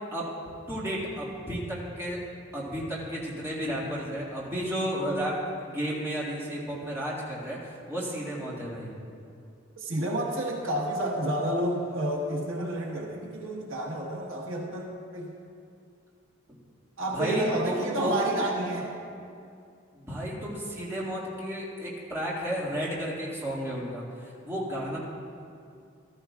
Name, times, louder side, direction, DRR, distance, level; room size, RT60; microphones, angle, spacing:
voice 1, 0.7-2.2 2.5-5.4 5.7-8.9 17.1-18.2 19.9-25.0, equal, 15° right, -7 dB, 2.1 m, -32 dB
voice 2, 9.8-15.3 17.0-18.9, right 1 dB, 80° right, -1 dB, 1.4 m, -30 dB
14.5 x 13.5 x 2.4 m, 2.4 s
head